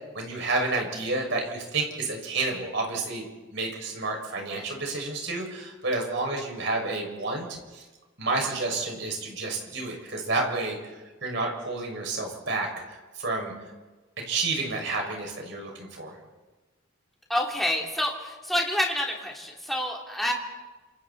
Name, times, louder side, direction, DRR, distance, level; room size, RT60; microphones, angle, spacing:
voice 1, 0.1-3.2 3.5-7.8 8.2-10.8 11.2-13.5 14.2-16.2, right 3 dB, 60° right, 1 dB, 6.5 m, -30 dB
voice 2, 17.3-20.3, left 1 dB, ahead, -2 dB, 3.5 m, -28 dB
28.5 x 28.0 x 4.4 m, 1.2 s
head